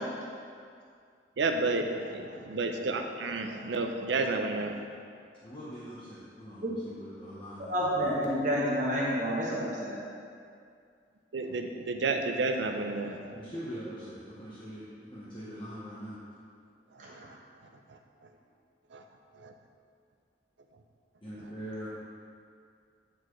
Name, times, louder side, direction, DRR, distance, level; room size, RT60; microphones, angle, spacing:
voice 1, 1.4-4.8 11.3-13.4 17.0-17.3 18.9-19.0 19.4-19.5, right 3 dB, 85° right, 5 dB, 0.5 m, -31 dB
voice 2, 5.4-8.1 13.4-16.2 21.2-21.9, equal, 30° left, -10 dB, 0.9 m, -42 dB
voice 3, 7.6-10.0, equal, 45° right, -5 dB, 1.1 m, -29 dB
9.1 x 4.3 x 3.1 m, 2.3 s
head